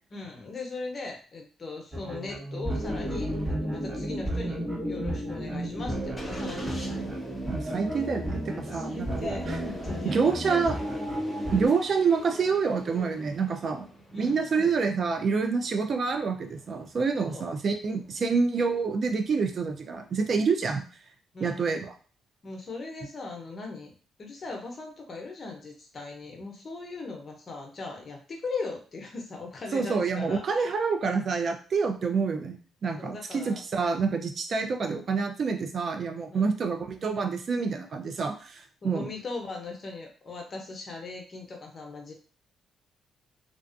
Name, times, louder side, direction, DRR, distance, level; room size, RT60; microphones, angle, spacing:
voice 1, 0.1-7.2 8.7-11.0 14.1-14.7 17.3-17.4 21.3-21.6 22.4-23.9 24.2-30.7 33.0-33.6 36.3-36.5 38.8-42.1, left 3 dB, 40° left, 1 dB, 0.8 m, -39 dB
sound 1, 1.9-11.7, equal, 30° right, 1.0 m, -32 dB
Engine starting, 5.0-20.2, equal, 15° left, 0.9 m, -51 dB
voice 2, 7.5-9.6 10.0-10.8 11.5-13.9 14.1-20.8 21.4-21.9 29.7-39.1, right 5 dB, 50° right, 5 dB, 0.4 m, -27 dB
2.4 x 2.3 x 2.5 m, 0.39 s
cardioid pair, 90°, 0 cm